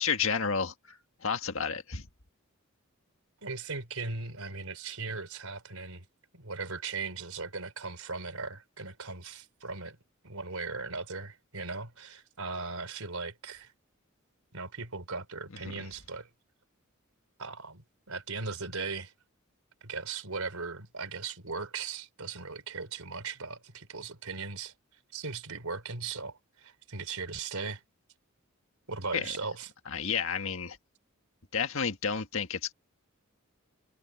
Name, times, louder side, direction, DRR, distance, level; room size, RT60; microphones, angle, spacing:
voice 1, 0.0-2.1 29.1-29.3 29.9-30.8 31.5-32.7, left 6 dB, 65° left, 1.8 m, -31 dB
voice 2, 3.4-6.1 6.3-10.0 10.2-13.7 14.5-16.3 17.4-19.1 19.8-24.7 25.1-27.8 28.9-29.7, right 4 dB, 85° right, 3.9 m, -38 dB
head